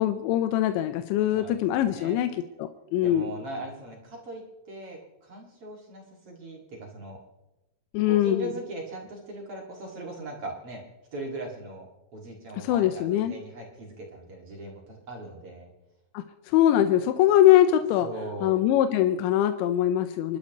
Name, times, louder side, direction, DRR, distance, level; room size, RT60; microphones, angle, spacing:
voice 1, 0.0-2.3 2.6-3.3 7.9-8.5 12.5-13.4 16.1-18.1 18.4-20.4, left 12 dB, 85° left, 8 dB, 3.0 m, -22 dB
voice 2, 1.3-2.2 3.0-4.4 4.7-7.2 8.0-10.8 11.1-15.7 18.0-18.5, right 2 dB, 45° right, -1 dB, 2.3 m, -40 dB
29.5 x 12.0 x 3.0 m, 0.99 s
omnidirectional pair, 5.2 m